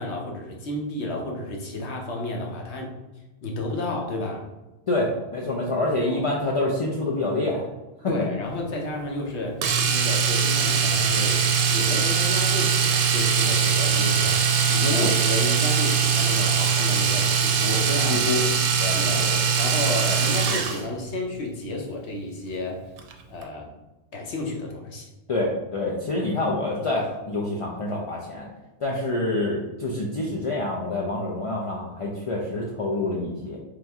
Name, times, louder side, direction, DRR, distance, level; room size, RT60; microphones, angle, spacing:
voice 1, 0.0-2.9 3.4-4.4 6.1-6.2 8.0-11.4 11.7-18.2 18.8-19.2 19.6-22.8 23.3-23.7 24.1-25.1, left 2 dB, 70° left, 0 dB, 1.1 m, -31 dB
voice 2, 4.9-7.7 8.0-8.3 14.9-15.1 18.1-18.4 18.8-19.4 20.1-20.2 25.3-28.5 28.8-33.6, left 2 dB, 50° left, -3 dB, 0.4 m, -27 dB
Domestic sounds home sounds, 9.6-20.9 23.0-23.1 23.4-23.5, right 6 dB, 70° right, 0.8 m, -22 dB
3.5 x 3.0 x 3.4 m, 1.1 s
omnidirectional pair, 1.2 m